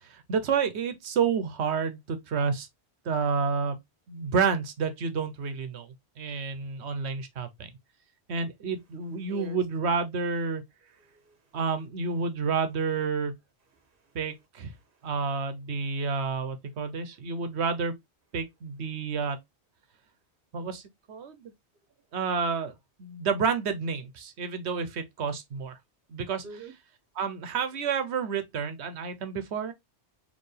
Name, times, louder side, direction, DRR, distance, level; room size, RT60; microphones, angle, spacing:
voice 1, 0.1-2.7 3.0-3.8 4.1-5.9 6.2-7.7 8.3-10.6 11.5-13.3 14.1-14.7 15.0-17.9 18.3-19.4 20.5-20.8 21.1-21.5 22.1-22.7 23.0-25.7 26.1-26.4 27.2-29.7, right 5 dB, 80° right, 1.1 m, -29 dB
voice 2, 9.3-9.6 11.0-11.6 13.7-14.2 14.8-15.1 16.9-17.0 26.4-26.7, right 4 dB, 55° right, 1.2 m, -47 dB
4.5 x 3.2 x 3.2 m
omnidirectional pair, 1.1 m